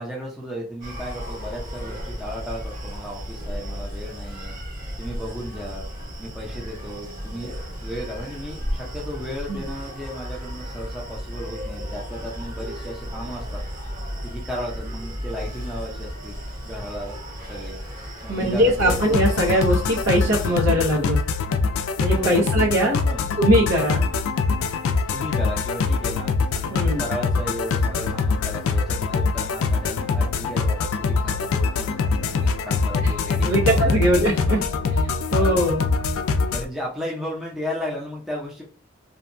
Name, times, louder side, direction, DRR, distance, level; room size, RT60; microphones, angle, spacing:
voice 1, 0.0-4.6 5.0-5.9 6.2-13.6 14.2-16.4 16.6-17.2 17.5-17.8 18.2-19.0 22.1-22.7 23.0-23.2 25.1-26.3 26.7-34.3 35.3-35.6 36.5-38.6, equal, ahead, -4 dB, 0.5 m, -34 dB
Screaming, 0.8-20.6, equal, 40° right, 0.9 m, -34 dB
voice 2, 18.3-21.2 22.0-23.0 23.4-24.0 26.7-27.0 33.0-33.1 33.4-34.6 34.9-35.8, equal, 85° right, -5 dB, 0.7 m, -21 dB
sound 1, 18.8-36.7, left 4 dB, 90° left, 0.3 m, -23 dB
2.7 x 2.2 x 2.6 m, 0.42 s
head